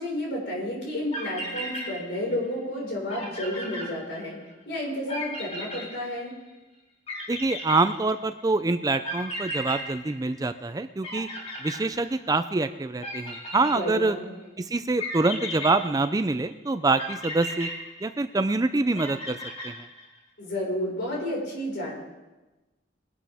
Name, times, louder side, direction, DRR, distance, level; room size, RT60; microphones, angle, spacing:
voice 1, 0.0-4.4 4.6-6.3 13.7-14.3 20.4-21.9, left 1 dB, 65° left, -3 dB, 5.1 m, -31 dB
sound 1, 1.1-2.5 2.8-2.9 3.1-4.5 5.1-6.5 7.1-8.4 9.0-10.7 11.0-12.4 13.0-14.2 15.0-16.4 17.0-18.5 19.0-20.2, left 1 dB, 35° left, 4.4 m, -36 dB
voice 2, 7.3-11.3 11.6-14.2 14.6-17.7 18.0-19.4 19.6-19.9, right 3 dB, 20° right, 10 dB, 0.4 m, -25 dB
22.0 x 11.0 x 3.5 m, 1.1 s
head